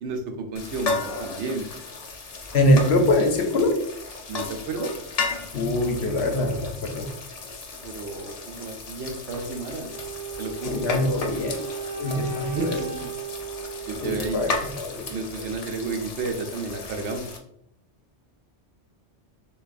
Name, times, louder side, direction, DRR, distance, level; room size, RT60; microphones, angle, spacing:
voice 1, 0.0-1.7 4.3-5.0 7.8-9.9 10.4-10.8 12.4-13.1 13.9-14.4 15.1-17.3, right 3 dB, 75° right, 4 dB, 0.9 m, -32 dB
sound 1, 0.6-17.4, left 4 dB, 45° left, 0.5 m, -35 dB
voice 2, 2.5-3.8 5.5-7.1 10.6-11.6 12.0-12.8 14.0-15.1, left 1 dB, 65° left, 4 dB, 0.9 m, -23 dB
Wind instrument woodwind instrument, 9.9-15.0, right 4 dB, 25° right, 0.3 m, -36 dB
6.7 x 2.3 x 2.5 m, 0.70 s
omnidirectional pair, 1.2 m